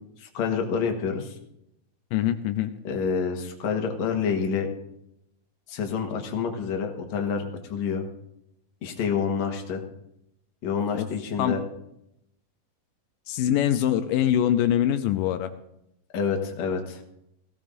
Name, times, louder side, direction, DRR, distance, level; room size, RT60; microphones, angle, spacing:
voice 1, 0.2-1.3 2.8-4.7 5.7-7.4 7.7-8.0 8.8-9.8 10.6-11.6 16.1-17.0, left 6 dB, 60° left, 3 dB, 2.5 m, -28 dB
voice 2, 2.1-2.7 10.9-11.1 11.4-11.6 13.3-15.5, left 11 dB, 85° left, 8 dB, 2.2 m, -23 dB
18.0 x 16.0 x 2.6 m, 0.81 s
omnidirectional pair, 3.8 m